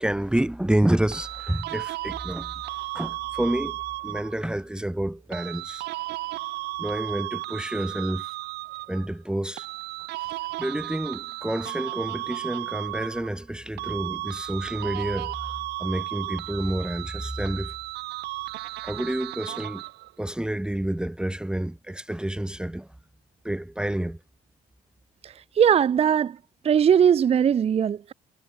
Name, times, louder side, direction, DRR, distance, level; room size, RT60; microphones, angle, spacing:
voice 1, 0.0-5.9 6.8-8.3 8.9-9.7 10.6-17.7 18.8-19.8 20.2-22.9 23.4-24.2, right 1 dB, 5° right, 1.6 m, -29 dB
sound 1, 1.1-4.5 5.3-9.1 9.6-13.5 13.8-20.1, right 19 dB, 85° right, 2.3 m, -34 dB
voice 2, 25.2-26.4 26.6-28.1, right 8 dB, 35° right, 0.7 m, -20 dB
cardioid pair, 110°, 17 cm